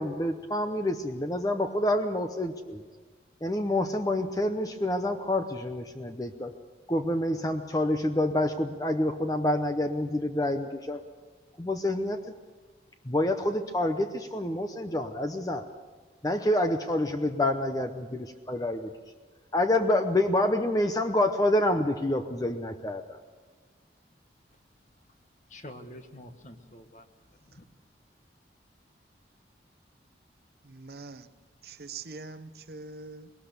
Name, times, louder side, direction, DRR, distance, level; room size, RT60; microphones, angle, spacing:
voice 1, 0.0-2.9 3.4-6.5 6.9-11.0 11.6-12.2 13.0-15.7 16.2-18.9 19.5-23.2, left 1 dB, 20° left, 7 dB, 0.8 m, -27 dB
voice 2, 25.5-27.6, left 1 dB, 40° left, 7 dB, 1.5 m, -47 dB
voice 3, 30.6-31.3 31.6-33.3, right 4 dB, 60° right, 11 dB, 0.8 m, -43 dB
21.0 x 18.5 x 6.8 m, 1.5 s
head